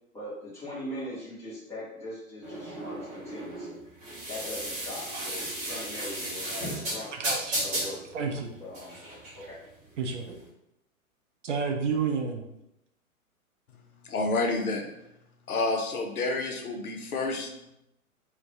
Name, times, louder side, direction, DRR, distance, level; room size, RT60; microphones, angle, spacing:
voice 1, 0.1-3.8 4.3-7.1 7.6-8.0 8.6-9.0 9.3-9.6, left 1 dB, 5° left, -10 dB, 0.8 m, -40 dB
sound 1, 2.4-10.4, right 1 dB, 20° right, 0.8 m, -35 dB
voice 2, 7.1-7.6 8.1-8.5 10.0-10.4 11.4-12.5, right 5 dB, 55° right, 3 dB, 0.5 m, -30 dB
voice 3, 14.0-14.9 15.5-17.7, left 2 dB, 80° left, 2 dB, 0.6 m, -29 dB
2.3 x 2.2 x 2.6 m, 0.85 s
figure-of-eight pair, 115°, 43 cm